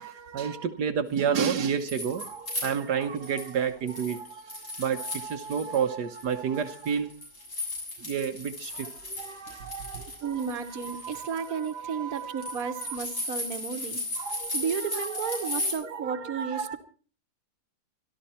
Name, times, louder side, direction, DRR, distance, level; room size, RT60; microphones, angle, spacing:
voice 1, 0.0-7.1 8.0-13.0 14.2-16.8, right 7 dB, 80° right, 1.6 m, -31 dB
sound 1, 1.6-3.5 3.9-5.8 6.1-15.7, left 1 dB, 50° left, 7.5 m, -36 dB
voice 2, 5.7-6.0 10.2-14.0 14.5-16.8, right 6 dB, 60° right, 1.7 m, -33 dB
24.0 x 13.0 x 4.3 m
omnidirectional pair, 1.7 m